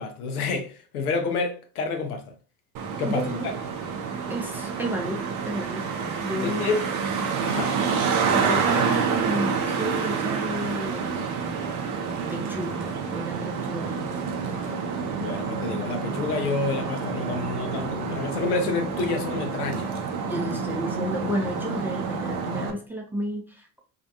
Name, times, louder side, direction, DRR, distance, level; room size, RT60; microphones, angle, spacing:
voice 1, 0.0-2.2 3.0-3.5 6.4-6.8 7.4-7.7 15.2-19.9, left 4 dB, 80° left, 0.6 m, -28 dB
Traffic noise roadway noise, 2.7-22.7, right 5 dB, 45° right, 0.6 m, -28 dB
voice 2, 3.0-3.5 4.3-5.9 6.2-6.8 8.3-11.1 12.3-14.2 20.3-23.8, equal, 5° right, 0.5 m, -32 dB
2.4 x 2.2 x 2.7 m
figure-of-eight pair, 60°, 44 cm